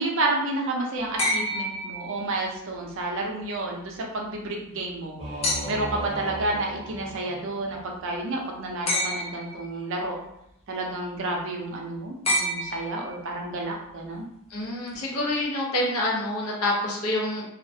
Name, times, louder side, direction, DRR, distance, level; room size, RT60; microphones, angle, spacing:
voice 1, 0.0-5.2 5.7-10.2 10.7-14.3, right 2 dB, 60° right, 0 dB, 0.5 m, -30 dB
sound 1, 1.2-2.6 5.4-6.0 8.9-9.7 12.2-13.3 14.9-15.0, left 1 dB, 25° left, 0.3 m, -28 dB
Singing / Musical instrument, 5.2-8.1, right 1 dB, 25° right, 0.7 m, -37 dB
voice 2, 14.5-17.4, left 1 dB, 75° left, -3 dB, 0.7 m, -27 dB
2.3 x 2.0 x 2.6 m, 0.79 s
head